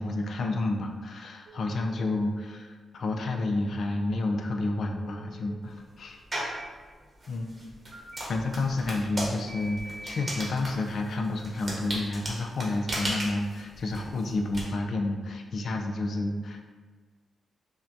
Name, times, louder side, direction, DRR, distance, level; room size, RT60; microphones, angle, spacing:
voice 1, 0.0-6.2 7.3-7.8 8.3-16.6, left 2 dB, 65° left, 3 dB, 0.4 m, -30 dB
Telephone, 1.5-2.0 5.0-5.5 6.4-6.7 7.9-8.2 9.5-10.5, right 1 dB, 70° right, 0.4 m, -44 dB
sound 1, 6.3-6.6 7.2-14.6, right 1 dB, 30° right, 0.9 m, -36 dB
5.6 x 2.2 x 2.7 m, 1.4 s
cardioid pair, 100°, 0 cm